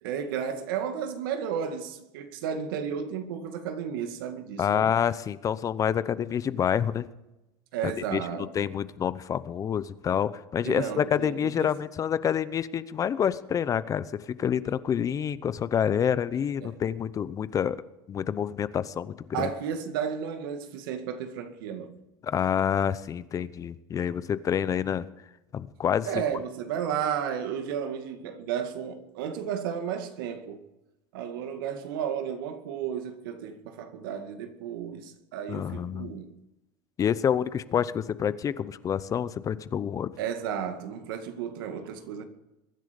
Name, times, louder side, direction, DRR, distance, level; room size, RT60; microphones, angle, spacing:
voice 1, 0.0-4.9 7.7-8.5 10.6-11.7 16.6-16.8 19.3-22.0 26.0-30.6 31.1-36.3 40.2-42.2, right 8 dB, 85° right, 2.1 m, -33 dB
voice 2, 4.6-7.1 8.1-17.8 18.1-19.5 22.2-25.0 25.5-26.1 35.5-36.1 37.0-40.1, left 8 dB, 30° left, 0.8 m, -28 dB
22.5 x 10.5 x 5.2 m
supercardioid pair, 120°, 11 cm